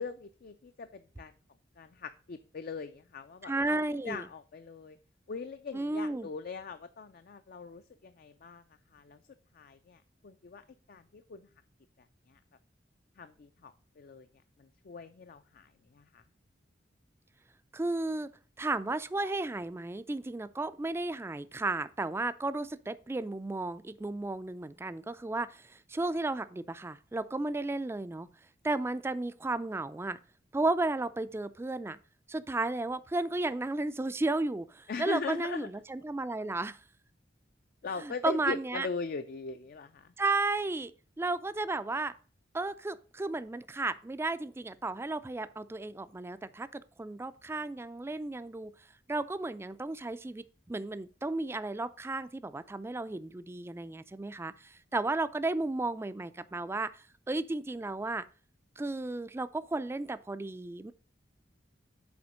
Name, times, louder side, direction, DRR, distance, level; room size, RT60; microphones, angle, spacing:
voice 1, 0.0-1.3 1.8-5.0 5.3-8.6 8.9-9.2 9.5-11.5 12.0-12.4 13.2-14.3 14.6-16.2 34.9-35.7 37.8-40.1, left 4 dB, 50° left, 0.4 m, -41 dB
voice 2, 3.4-4.2 5.7-6.3 17.7-18.3 18.6-28.3 28.6-30.2 30.5-32.0 32.3-36.8 38.0-38.9 40.2-40.9 41.2-42.1 42.5-48.7 49.1-58.3 58.8-60.9, right 2 dB, 15° right, 0.3 m, -33 dB
7.0 x 4.4 x 6.2 m
head